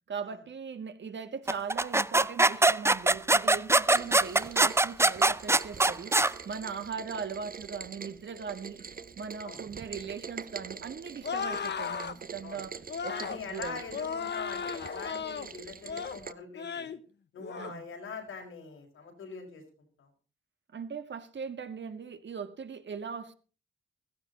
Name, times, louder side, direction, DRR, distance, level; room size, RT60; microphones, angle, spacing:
voice 1, 0.1-8.8 9.2-12.7 13.0-13.8 17.6-17.9 20.7-23.3, right 6 dB, 65° right, 1.8 m, -39 dB
sound 1, 1.5-6.3, right 2 dB, 15° right, 0.6 m, -23 dB
Rain, 3.9-16.3, right 6 dB, 45° right, 1.0 m, -45 dB
sound 2, 11.2-12.2 12.9-13.4 13.9-15.5 15.8-16.2 16.6-17.0 17.4-17.7, left 6 dB, 60° left, 1.2 m, -35 dB
voice 2, 13.1-17.0 17.3-19.6 20.0-20.1, left 5 dB, 90° left, 5.1 m, -43 dB
16.0 x 14.0 x 4.1 m
cardioid pair, 60°, 20 cm